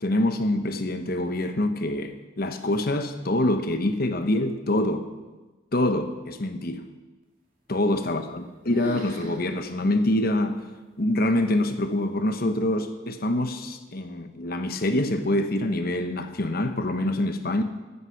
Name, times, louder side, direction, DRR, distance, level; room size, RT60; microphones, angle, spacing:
voice 1, 0.0-5.1 5.7-6.9 7.7-10.6 11.0-17.6, left 1 dB, 45° left, 1.0 m, -25 dB
sound 1, 7.9-8.4 8.7-9.4 9.8-9.9 10.5-10.6 11.4-11.8, equal, 40° right, 2.5 m, -37 dB
15.0 x 9.8 x 5.8 m
head